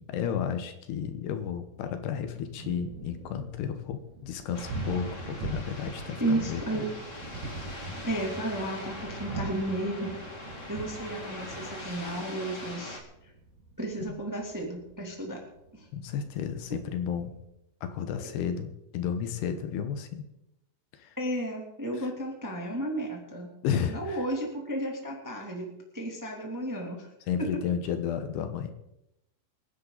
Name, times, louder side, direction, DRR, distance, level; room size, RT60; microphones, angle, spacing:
voice 1, 0.0-6.9 14.0-14.2 15.9-17.3 17.8-20.2 21.0-21.2 22.0-22.1 23.6-24.2 27.3-28.7, left 8 dB, 75° left, 8 dB, 3.1 m, -32 dB
Thunder, 2.2-17.5, right 2 dB, 55° right, 3.6 m, -42 dB
sound 1, 4.5-13.0, left 2 dB, 25° left, 1.7 m, -42 dB
voice 2, 6.2-6.8 8.0-10.1 10.7-13.0 13.8-15.4 15.7-15.9 21.2-23.5 23.9-27.1 27.4-27.5, right 1 dB, 5° right, 0 dB, 1.8 m, -33 dB
25.5 x 10.0 x 4.0 m, 0.84 s
omnidirectional pair, 4.8 m